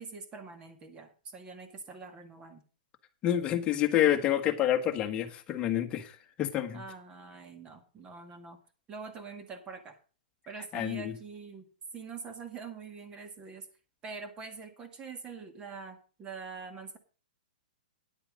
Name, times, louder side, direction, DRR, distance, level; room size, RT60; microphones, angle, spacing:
voice 1, 0.0-2.6 6.7-8.6 8.9-10.0 10.5-13.7 14.0-17.0, right 5 dB, 20° right, 1.7 m, -44 dB
voice 2, 3.2-6.8 10.7-11.1, left 11 dB, 20° left, 1.4 m, -28 dB
9.7 x 8.8 x 5.2 m
hypercardioid pair, 150°, 5 cm